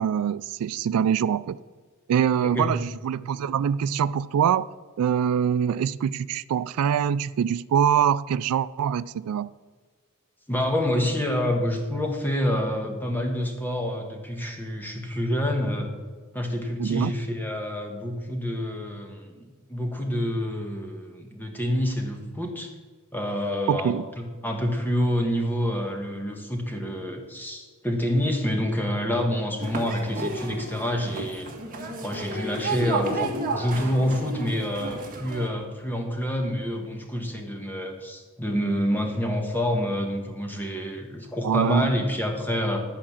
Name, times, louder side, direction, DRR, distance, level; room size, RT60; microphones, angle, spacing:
voice 1, 0.0-1.6 2.1-4.7 5.0-9.5 16.8-17.1 23.7-24.1 41.4-41.9, right 8 dB, 80° right, 0.3 m, -24 dB
voice 2, 10.5-15.9 16.3-22.7 23.1-31.5 32.0-42.8, equal, 10° left, 1.3 m, -27 dB
sound 1, 29.6-35.5, right 2 dB, 40° right, 1.5 m, -32 dB
11.5 x 4.9 x 7.2 m
head